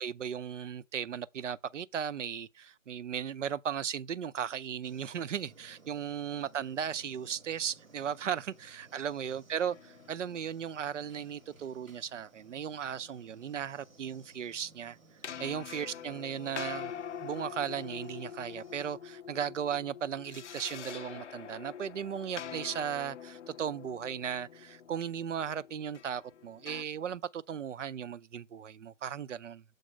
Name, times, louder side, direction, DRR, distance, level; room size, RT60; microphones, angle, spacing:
voice 1, 0.0-15.0 15.4-16.9 17.2-29.6, right 8 dB, 65° right, 0.5 m, -36 dB
sound 1, 4.8-19.0, right 3 dB, 90° right, 1.4 m, -60 dB
sound 2, 9.5-11.6 15.2-26.8, left 8 dB, 60° left, 0.5 m, -45 dB
6.5 x 4.2 x 5.0 m
figure-of-eight pair, 155°, 40 cm